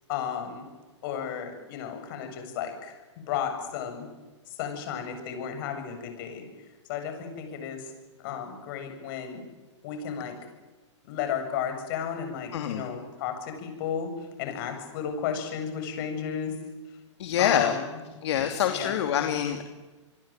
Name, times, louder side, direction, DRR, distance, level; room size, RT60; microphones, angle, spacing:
voice 1, 0.1-0.7 1.0-3.0 3.3-4.1 4.5-6.4 6.9-7.9 8.2-9.4 9.8-10.4 11.0-16.5 17.4-17.9 18.6-19.1, left 8 dB, 45° left, 6 dB, 7.7 m, -33 dB
voice 2, 12.5-12.8 17.2-17.8 18.2-19.6, left 9 dB, 60° left, 5 dB, 2.9 m, -26 dB
28.0 x 22.5 x 9.1 m, 1.2 s
hypercardioid pair, 145°, 16 cm